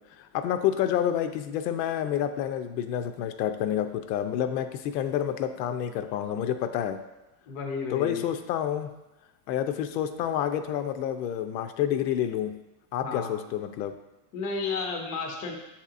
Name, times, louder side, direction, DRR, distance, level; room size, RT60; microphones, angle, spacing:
voice 1, 0.2-7.0 7.9-8.9 9.5-12.5 12.9-13.9, left 10 dB, 80° left, 8 dB, 0.6 m, -28 dB
voice 2, 7.5-8.2 13.0-13.5 14.3-15.5, left 4 dB, 30° left, 1 dB, 0.4 m, -32 dB
7.2 x 2.8 x 2.4 m, 0.96 s
supercardioid pair, 155°, 49 cm